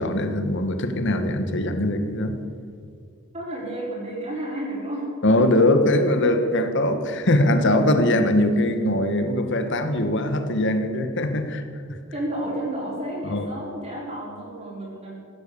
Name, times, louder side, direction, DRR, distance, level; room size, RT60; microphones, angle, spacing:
voice 1, 0.0-2.3 5.2-11.6 13.2-13.5, left 1 dB, 60° left, 8 dB, 1.6 m, -21 dB
voice 2, 3.3-5.1 12.1-15.1, right 1 dB, 30° right, -6 dB, 5.3 m, -31 dB
16.0 x 12.5 x 7.1 m, 2.3 s
head